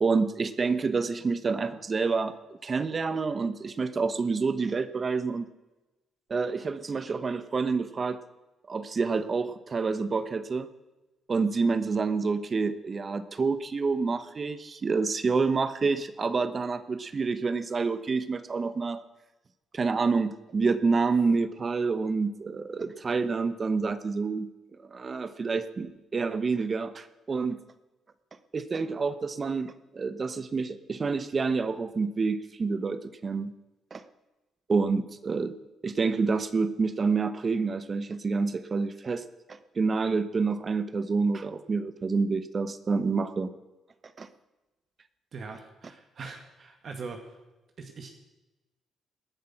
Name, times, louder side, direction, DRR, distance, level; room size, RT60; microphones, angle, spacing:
voice 1, 0.0-2.3 2.6-5.4 6.3-8.2 8.7-10.7 11.3-19.0 19.7-24.5 24.9-27.6 28.5-33.5 33.9-34.0 34.7-35.6 35.8-43.5 44.2-44.3, right 4 dB, 35° right, 12 dB, 1.0 m, -28 dB
voice 2, 45.3-47.3 47.8-48.1, right 4 dB, 55° right, 4 dB, 1.9 m, -41 dB
19.0 x 10.5 x 5.9 m, 1.1 s
cardioid pair, 90°, 0 cm